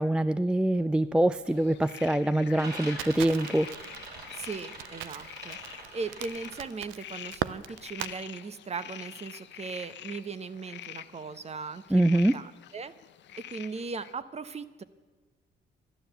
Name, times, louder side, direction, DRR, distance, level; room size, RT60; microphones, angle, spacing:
voice 1, 0.0-3.7 11.9-12.4, right 1 dB, 5° right, 13 dB, 0.3 m, -24 dB
sound 1, 0.9-1.1 1.5-2.0 2.3-6.6, right 2 dB, 55° right, 3.6 m, -44 dB
sound 2, 1.4-14.1, left 11 dB, 65° left, 0.6 m, -46 dB
Crackle, 3.0-8.1, right 13 dB, 90° right, 0.5 m, -39 dB
voice 2, 4.3-12.9 13.5-14.8, right 4 dB, 35° right, 14 dB, 0.8 m, -38 dB
12.0 x 11.0 x 7.9 m, 1.3 s
cardioid pair, 90°, 20 cm